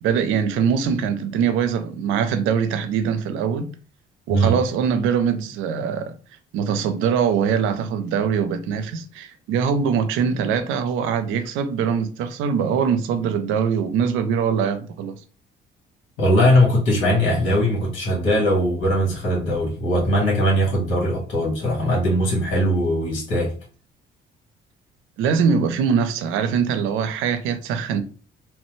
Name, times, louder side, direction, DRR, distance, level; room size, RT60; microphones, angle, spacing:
voice 1, 0.0-3.7 4.3-6.1 6.5-15.2 25.2-28.0, right 7 dB, 85° right, 0.5 m, -22 dB
voice 2, 16.2-23.5, equal, 75° left, 1.6 m, -20 dB
3.0 x 2.1 x 3.1 m
cardioid pair, 90°, 20 cm